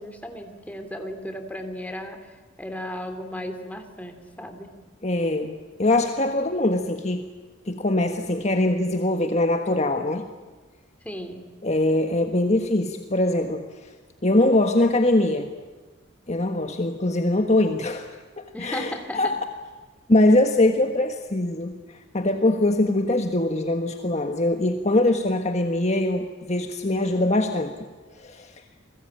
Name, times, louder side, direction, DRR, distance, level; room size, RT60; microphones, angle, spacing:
voice 1, 0.0-2.3 2.6-4.8 11.0-11.4 18.5-19.3, left 1 dB, 10° left, 5 dB, 3.2 m, -35 dB
voice 2, 5.0-7.3 7.7-10.3 11.6-13.7 14.2-15.5 16.3-19.4 20.1-21.8 22.1-27.7 28.2-28.5, left 1 dB, 35° left, 5 dB, 1.5 m, -22 dB
30.0 x 21.5 x 9.0 m, 1.3 s
head